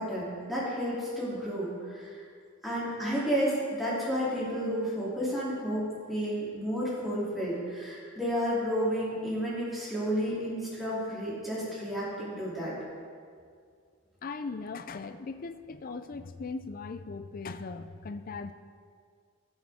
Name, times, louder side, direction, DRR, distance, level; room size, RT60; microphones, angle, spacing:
voice 1, 0.0-2.1 2.6-12.7, equal, ahead, -9 dB, 2.9 m, -31 dB
voice 2, 14.2-18.5, left 4 dB, 45° left, 10 dB, 0.5 m, -39 dB
17.0 x 6.4 x 3.6 m, 2.1 s
head